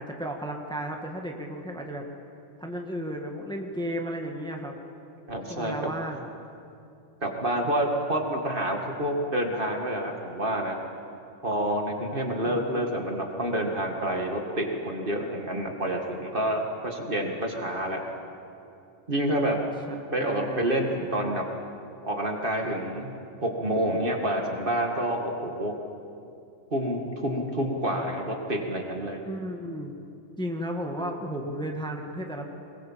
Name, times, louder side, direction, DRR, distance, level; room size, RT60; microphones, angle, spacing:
voice 1, 0.0-2.0 2.6-4.8 5.5-6.3 12.4-12.9 20.2-20.6 29.2-29.9 30.4-32.4, equal, 5° left, 1 dB, 1.7 m, -34 dB
voice 2, 5.3-5.9 7.2-10.8 11.4-18.0 19.1-19.6 20.1-21.5 22.0-23.1 23.4-25.8 26.7-29.2, right 1 dB, 45° right, 2 dB, 2.4 m, -28 dB
23.5 x 21.5 x 7.6 m, 2.6 s
omnidirectional pair, 1.3 m